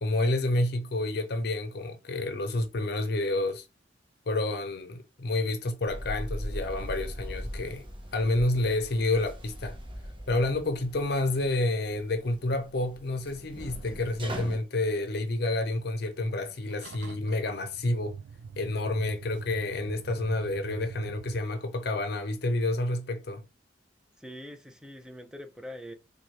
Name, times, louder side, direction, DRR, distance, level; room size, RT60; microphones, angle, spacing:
voice 1, 0.0-3.6 4.3-7.8 8.1-9.8 10.3-18.2 18.6-23.5, left 2 dB, 65° left, 0.7 m, -29 dB
sound 1, 5.9-14.6, equal, 30° right, 0.9 m, -40 dB
sound 2, 16.2-21.4, right 5 dB, 80° right, 0.3 m, -43 dB
voice 2, 24.2-25.9, equal, 5° right, 0.6 m, -43 dB
4.4 x 2.3 x 3.1 m
head